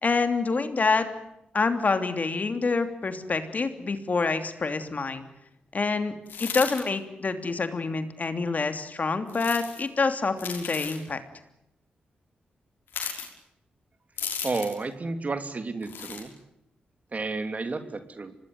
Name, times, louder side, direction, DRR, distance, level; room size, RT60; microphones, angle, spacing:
voice 1, 0.0-1.1 1.5-5.2 5.7-6.1 6.4-11.2, left 4 dB, 50° left, 8 dB, 3.1 m, -27 dB
sound 1, 6.3-6.8 9.3-9.8 10.4-11.0 12.9-13.3 14.2-14.8 15.8-16.2, left 6 dB, 80° left, 5.8 m, -35 dB
voice 2, 14.4-16.3 17.1-18.3, right 3 dB, 45° right, 9 dB, 3.0 m, -31 dB
25.5 x 19.5 x 9.6 m, 0.84 s
cardioid pair, 50°, 4 cm